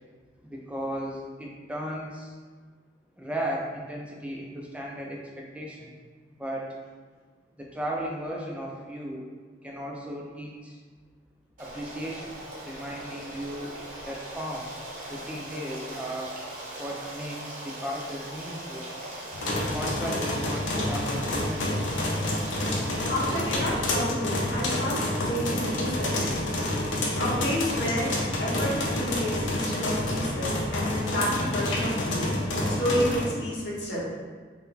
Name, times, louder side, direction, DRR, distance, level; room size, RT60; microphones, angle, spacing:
voice 1, 0.4-2.3 3.2-5.9 6.4-6.7 7.6-9.3 9.6-10.8 11.6-12.3 12.6-13.8 14.0-14.7 15.1-16.4 16.8-18.9 19.7-21.7, equal, 5° right, -2 dB, 0.4 m, -35 dB
Stream, 11.6-23.6, right 1 dB, 45° right, 0.8 m, -40 dB
sound 1, 19.3-33.2, left 1 dB, 85° left, 0.7 m, -28 dB
voice 2, 23.1-26.4 27.2-28.1 28.4-32.3 32.7-34.0, equal, 70° left, -7 dB, 1.2 m, -30 dB
3.9 x 2.1 x 4.0 m, 1.5 s
head